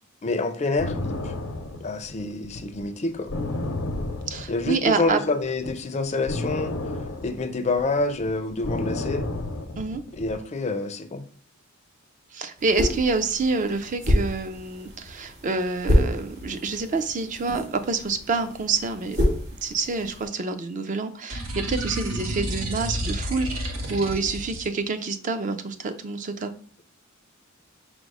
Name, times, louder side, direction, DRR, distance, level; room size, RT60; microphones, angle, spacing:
voice 1, 0.2-1.3 1.8-3.3 4.5-6.8 7.2-9.3 10.1-11.2, left 3 dB, 35° left, 9 dB, 0.4 m, -27 dB
sound 1, 0.8-5.1 5.4-10.4, left 2 dB, 85° left, 0.7 m, -31 dB
voice 2, 4.3-5.2 9.8-10.0 12.3-19.2 19.6-26.5, right 4 dB, 40° right, 9 dB, 0.4 m, -27 dB
sound 2, 12.6-20.3, equal, 55° right, 2.0 m, -28 dB
sound 3, 21.3-24.7, right 1 dB, 85° right, 1.0 m, -30 dB
5.1 x 2.0 x 4.7 m, 0.43 s
head